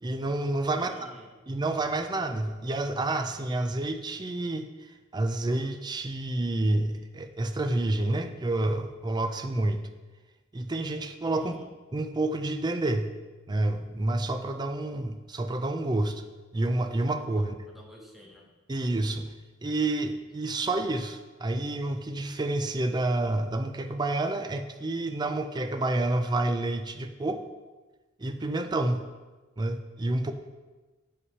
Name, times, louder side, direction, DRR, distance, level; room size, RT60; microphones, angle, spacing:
voice 1, 0.0-1.1 1.5-4.7 5.1-9.8 10.5-11.6 11.9-13.1 13.5-16.2 16.5-17.5 18.7-19.3 19.6-27.4 28.2-29.0 29.6-30.3, right 2 dB, 20° right, 7 dB, 0.5 m, -29 dB
voice 2, 0.7-1.3 11.4-11.7 17.4-17.5 17.7-18.5, equal, ahead, -1 dB, 1.2 m, -51 dB
8.2 x 5.4 x 5.5 m, 1.2 s
head